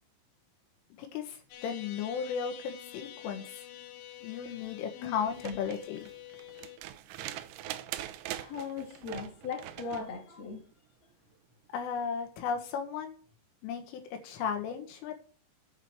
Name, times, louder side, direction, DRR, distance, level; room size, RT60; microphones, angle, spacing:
voice 1, 1.0-3.6 4.2-6.1 11.7-13.2 13.6-15.2, left 7 dB, 85° left, 4.1 m, -35 dB
sound 1, 1.5-6.8, left 12 dB, 70° left, 2.8 m, -48 dB
sound 2, 5.3-10.1 11.7-11.8, right 13 dB, 85° right, 2.3 m, -42 dB
voice 2, 8.3-10.7, left 5 dB, 40° left, 3.1 m, -39 dB
9.2 x 4.8 x 7.5 m
omnidirectional pair, 5.6 m